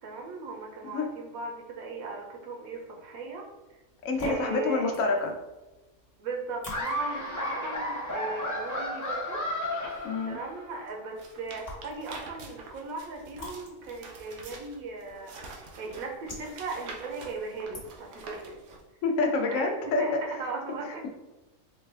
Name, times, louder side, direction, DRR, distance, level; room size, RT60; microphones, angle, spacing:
voice 1, 0.0-3.8 4.2-4.9 6.2-9.4 10.3-18.6 19.5-21.1, right 3 dB, 85° right, 1 dB, 1.2 m, -38 dB
sound 1, 3.9-18.3, left 1 dB, 45° left, 1.4 m, -48 dB
voice 2, 4.0-5.3 10.0-10.4 19.0-20.0, left 3 dB, 70° left, 2 dB, 1.0 m, -27 dB
Laughter, 6.7-10.7, left 1 dB, 20° left, 0.6 m, -33 dB
sound 2, 11.2-18.8, right 3 dB, 65° right, 0.9 m, -46 dB
4.1 x 2.2 x 3.3 m, 1.1 s
omnidirectional pair, 1.4 m